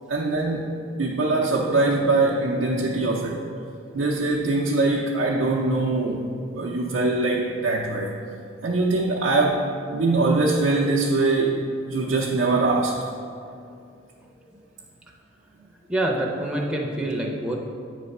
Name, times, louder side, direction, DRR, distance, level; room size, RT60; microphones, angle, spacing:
voice 1, 0.1-0.7 1.0-3.4 3.9-8.2 8.6-11.6 11.9-13.0, right 2 dB, 75° right, -2 dB, 0.6 m, -22 dB
voice 2, 15.9-17.6, right 1 dB, 5° right, -2 dB, 0.5 m, -27 dB
8.7 x 3.3 x 5.3 m, 2.5 s
head